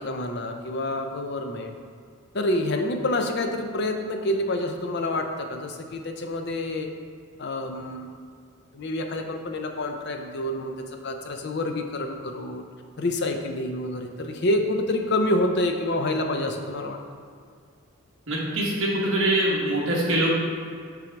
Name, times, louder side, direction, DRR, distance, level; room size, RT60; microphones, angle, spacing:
voice 1, 0.0-1.8 2.3-6.9 7.4-8.1 8.7-12.7 13.0-17.0, left 1 dB, 50° left, 4 dB, 0.5 m, -27 dB
voice 2, 18.3-20.3, right 1 dB, 60° right, -4 dB, 1.3 m, -23 dB
5.9 x 3.8 x 4.5 m, 2.2 s
head